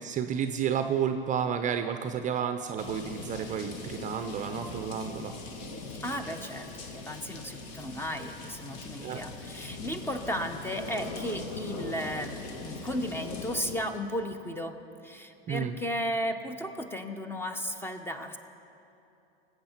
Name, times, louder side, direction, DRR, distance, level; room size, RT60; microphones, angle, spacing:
voice 1, 0.0-5.3 9.0-9.2 15.5-15.7, right 8 dB, 25° right, 8 dB, 0.5 m, -31 dB
sound 1, 2.8-13.7, left 3 dB, 60° left, 1.5 m, -41 dB
voice 2, 6.0-14.8 15.0-18.4, equal, 10° left, 7 dB, 0.7 m, -35 dB
19.0 x 8.0 x 4.4 m, 2.8 s
hypercardioid pair, 100°, 29 cm